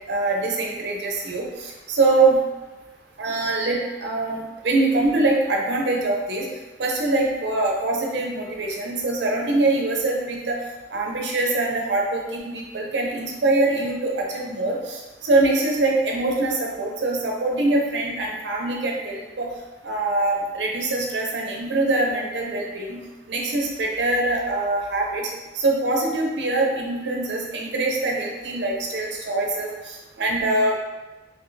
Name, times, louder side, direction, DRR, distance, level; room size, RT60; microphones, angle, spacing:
voice 1, 0.1-2.4 3.2-6.5 6.8-10.6 10.9-19.5 19.8-23.0 23.3-25.3 25.5-30.8, right 2 dB, 80° right, 0 dB, 0.5 m, -23 dB
3.7 x 2.5 x 2.6 m, 1.2 s
head